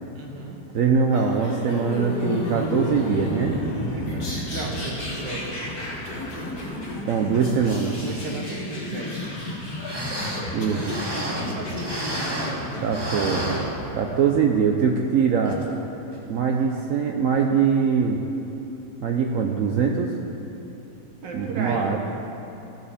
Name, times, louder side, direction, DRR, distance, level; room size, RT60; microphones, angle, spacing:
voice 1, 0.1-0.6 3.9-5.5 7.9-9.1 11.5-12.5 21.2-21.9, right 3 dB, 90° right, 0 dB, 1.9 m, -35 dB
voice 2, 0.7-3.6 7.0-8.0 10.5-11.0 12.8-13.6 13.9-15.6 16.3-18.2 19.0-20.1 21.3-22.0, right 6 dB, 70° right, 2 dB, 0.8 m, -22 dB
sound 1, 1.1-13.8, left 1 dB, 60° left, 1.9 m, -31 dB
sound 2, 9.5-9.6 9.8-12.6 12.9-14.3 14.7-14.8 15.4-15.7 16.1-16.2, right 1 dB, 25° right, 0.6 m, -31 dB
14.0 x 5.0 x 5.0 m, 2.9 s
omnidirectional pair, 1.9 m